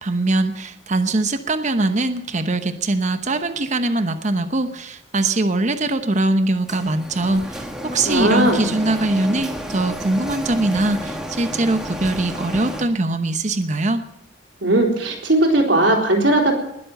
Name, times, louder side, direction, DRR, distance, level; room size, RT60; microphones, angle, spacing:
voice 1, 0.0-14.0, right 2 dB, 40° right, 9 dB, 1.0 m, -22 dB
Printer, 6.7-12.8, equal, 5° right, 1.7 m, -31 dB
voice 2, 8.0-8.7 14.6-16.5, right 1 dB, 80° right, -2 dB, 3.6 m, -18 dB
20.5 x 7.6 x 7.8 m, 0.83 s
head